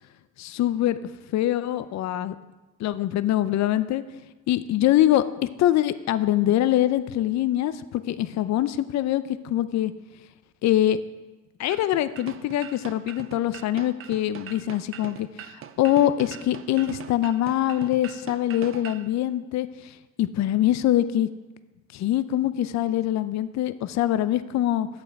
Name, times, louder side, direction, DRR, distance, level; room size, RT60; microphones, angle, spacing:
voice 1, 0.4-2.3 2.8-4.0 4.5-5.2 5.6-9.9 10.6-11.0 11.6-15.5 15.8-19.7 20.2-21.3 21.9-24.9, left 13 dB, 65° left, 14 dB, 0.5 m, -24 dB
sound 1, 11.7-19.1, right 9 dB, 45° right, 0.5 m, -42 dB
8.7 x 6.8 x 4.7 m, 1.1 s
cardioid pair, 90°, 30 cm